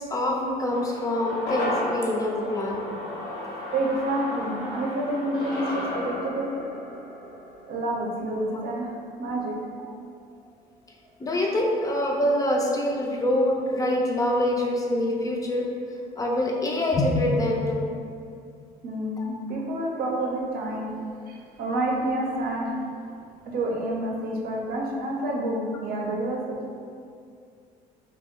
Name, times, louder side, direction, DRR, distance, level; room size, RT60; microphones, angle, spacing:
voice 1, 0.0-3.0 11.2-15.7 16.2-17.9 19.2-19.3, left 1 dB, 20° left, -1 dB, 0.4 m, -25 dB
sound 1, 0.7-9.2 9.5-9.6, left 1 dB, 85° left, 0.9 m, -34 dB
voice 2, 3.7-6.5 7.7-9.5 18.8-21.0 21.3-22.8 23.4-26.6, right 1 dB, 65° right, -2 dB, 0.6 m, -28 dB
2.7 x 2.0 x 3.6 m, 2.3 s
cardioid pair, 110°, 17 cm